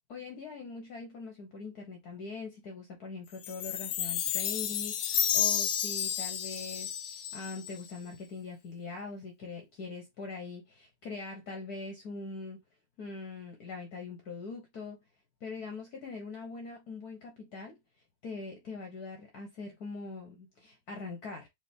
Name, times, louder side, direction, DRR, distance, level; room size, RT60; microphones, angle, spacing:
voice 1, 0.1-12.6 13.0-15.0 15.4-17.8 18.2-21.5, left 4 dB, 55° left, 1.4 m, -42 dB
Chime, 3.4-7.9, left 9 dB, 80° left, 1.5 m, -31 dB
4.0 x 3.7 x 3.5 m
omnidirectional pair, 2.1 m